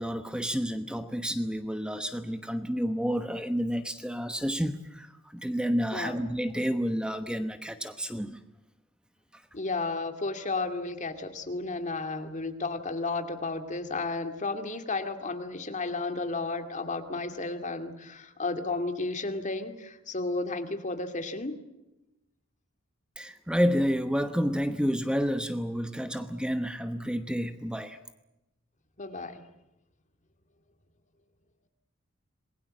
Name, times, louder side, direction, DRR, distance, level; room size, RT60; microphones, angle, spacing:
voice 1, 0.0-8.4 9.3-9.4 23.2-28.0, equal, 5° right, 8 dB, 1.1 m, -30 dB
voice 2, 9.5-21.6 29.0-29.4, left 3 dB, 35° left, 7 dB, 2.5 m, -33 dB
27.5 x 21.0 x 7.7 m, 0.96 s
head